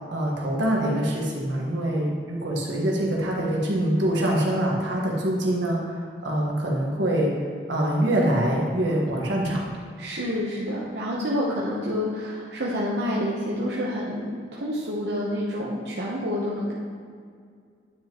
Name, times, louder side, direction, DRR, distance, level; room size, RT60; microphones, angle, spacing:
voice 1, 0.1-7.3 7.7-9.6, right 1 dB, 90° right, -2 dB, 1.5 m, -24 dB
voice 2, 10.0-16.7, equal, 70° right, -5 dB, 0.9 m, -28 dB
9.7 x 6.0 x 3.0 m, 2.1 s
head